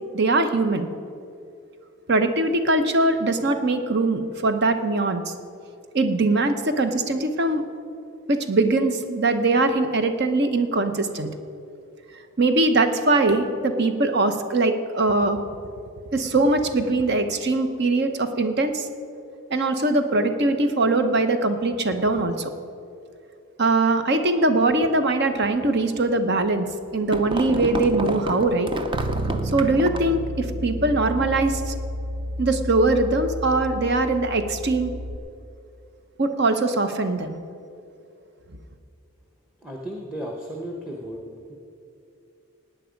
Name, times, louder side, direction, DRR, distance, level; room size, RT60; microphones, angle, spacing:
voice 1, 0.1-0.9 2.1-5.3 5.9-7.6 8.3-11.3 12.4-15.4 16.1-18.9 19.5-22.5 23.6-26.7 26.9-28.7 29.5-31.7 32.4-34.9 36.2-37.4, right 2 dB, 50° right, 8 dB, 0.8 m, -21 dB
sound 1, 26.4-30.2, right 1 dB, 20° right, 0.5 m, -30 dB
Bass guitar, 28.9-35.2, equal, 90° right, 0.7 m, -31 dB
voice 2, 39.6-41.2, equal, 5° right, 0 dB, 1.0 m, -34 dB
17.5 x 9.2 x 5.2 m, 2.6 s
head